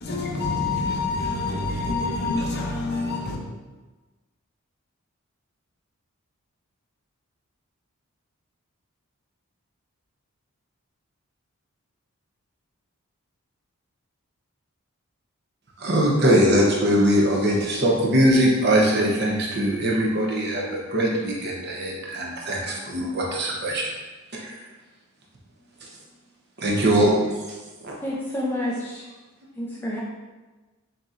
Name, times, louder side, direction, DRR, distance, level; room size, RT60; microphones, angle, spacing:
voice 1, 0.0-3.4, left 3 dB, 45° left, 0.7 m, -26 dB
voice 2, 15.8-23.9 24.3-24.6 25.8-25.9 26.6-27.3 27.8-27.9, right 1 dB, 50° right, 0.8 m, -21 dB
voice 3, 28.0-29.0 29.6-30.0, left 1 dB, 10° left, 0.5 m, -29 dB
6.6 x 2.9 x 2.5 m
head